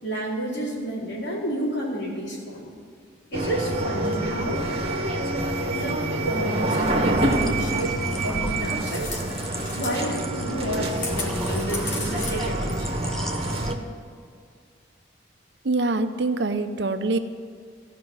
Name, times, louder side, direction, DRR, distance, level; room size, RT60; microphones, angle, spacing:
voice 1, 0.0-2.7 3.3-4.6 5.7-6.0 6.2-8.0 8.2-9.2 9.7-13.0, right 1 dB, 60° left, -5 dB, 4.3 m, -30 dB
sound 1, 3.3-13.8, right 2 dB, 30° right, 1.4 m, -27 dB
sound 2, 5.5-5.6 6.7-6.9 7.2-7.5 7.7-10.0 10.8-12.3, left 3 dB, 80° left, 2.5 m, -36 dB
sound 3, 7.3-13.7, equal, ahead, 0.4 m, -37 dB
voice 2, 15.6-17.2, right 3 dB, 60° right, 8 dB, 0.7 m, -24 dB
16.0 x 5.9 x 9.6 m, 2.2 s
head